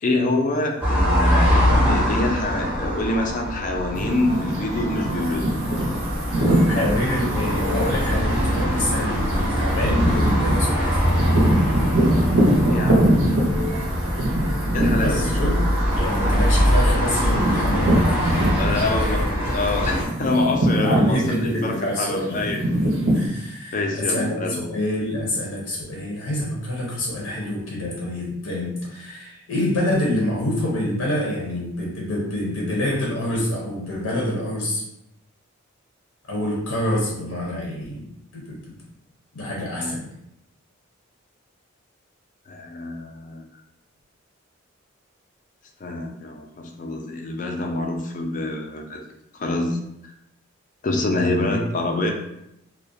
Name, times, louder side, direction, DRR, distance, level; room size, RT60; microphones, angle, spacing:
voice 1, 0.0-5.5 12.7-13.1 14.7-15.3 18.6-19.2 19.5-22.6 23.7-24.6 39.8-40.0 42.5-43.5 45.8-49.0 49.3-49.8 50.8-52.1, left 2 dB, 40° left, 3 dB, 0.3 m, -26 dB
sound 1, 0.8-20.0, equal, 10° right, 0.5 m, -23 dB
sound 2, 3.9-19.1 19.4-23.3, right 1 dB, 85° right, 0.6 m, -24 dB
voice 2, 6.4-11.0 15.0-15.6 15.9-19.2 20.8-22.4 23.1-34.8 36.3-38.0 38.3-38.8 39.3-40.1 51.4-51.6, left 1 dB, 75° left, -3 dB, 0.6 m, -27 dB
2.3 x 2.1 x 2.5 m, 0.81 s
head